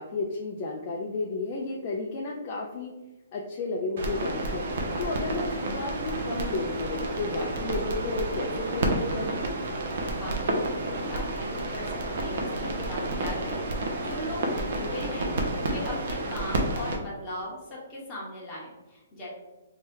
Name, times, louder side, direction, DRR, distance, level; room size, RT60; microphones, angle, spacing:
voice 1, 0.0-2.9 3.3-4.7 5.0-9.5, left 3 dB, 35° left, -2 dB, 0.4 m, -32 dB
sound 1, 4.0-17.0, right 2 dB, 55° right, 0.6 m, -30 dB
voice 2, 9.8-19.3, left 1 dB, 15° left, -6 dB, 1.0 m, -39 dB
3.3 x 2.7 x 3.5 m, 1.1 s
hypercardioid pair, 160°, 0 cm